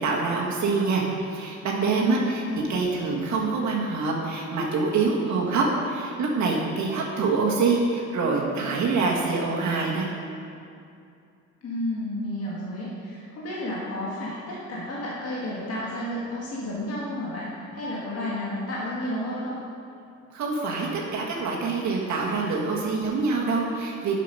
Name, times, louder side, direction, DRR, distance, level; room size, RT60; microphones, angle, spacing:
voice 1, 0.0-10.1 20.3-24.2, right 4 dB, 70° right, -2 dB, 1.5 m, -25 dB
voice 2, 2.4-2.8 11.6-19.6, left 1 dB, 50° left, -6 dB, 1.7 m, -32 dB
7.4 x 6.7 x 5.5 m, 2.5 s
cardioid pair, 90°, 30 cm